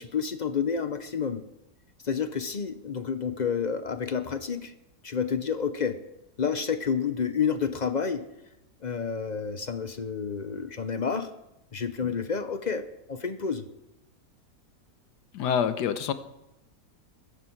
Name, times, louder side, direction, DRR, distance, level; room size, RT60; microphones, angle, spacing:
voice 1, 0.0-1.4 2.0-4.7 5.0-6.0 6.4-8.3 8.8-11.3 11.7-12.8 13.1-13.6, left 6 dB, 50° left, 10 dB, 0.5 m, -29 dB
voice 2, 15.3-16.1, left 8 dB, 90° left, 11 dB, 1.4 m, -26 dB
21.5 x 9.8 x 4.6 m, 0.92 s
omnidirectional pair, 1.7 m